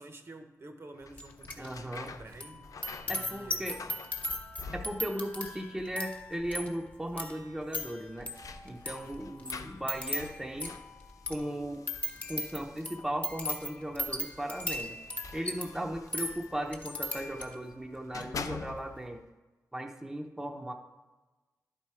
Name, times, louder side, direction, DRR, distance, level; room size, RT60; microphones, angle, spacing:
voice 1, 0.0-2.7 3.0-3.9, right 2 dB, 45° right, 6 dB, 0.8 m, -49 dB
sound 1, 1.0-5.4 5.6-6.3 6.6-6.7 7.8-13.2 14.1-17.6 18.0-19.2, left 5 dB, 75° left, 0.4 m, -47 dB
sound 2, 1.2-1.7 1.9-17.7 18.1-18.5, left 1 dB, 25° left, 1.0 m, -39 dB
voice 2, 1.6-2.1 3.1-3.8 4.7-8.3 8.6-10.8 11.3-11.8 12.3-15.0 15.3-19.2 19.7-20.7, right 1 dB, 5° right, 2 dB, 0.7 m, -37 dB
11.5 x 4.4 x 4.7 m, 1.2 s
wide cardioid pair, 110°, 6 cm